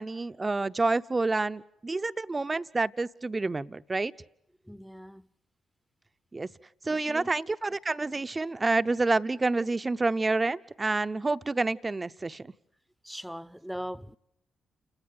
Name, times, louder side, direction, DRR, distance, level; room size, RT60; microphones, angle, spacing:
voice 1, 0.0-4.1 6.3-6.5 6.8-12.5, right 3 dB, 30° right, 0.8 m, -28 dB
voice 2, 4.6-5.3 6.9-7.3 13.0-14.2, equal, 5° right, 0.9 m, -40 dB
30.0 x 18.0 x 6.7 m
hypercardioid pair, 40°, 0 cm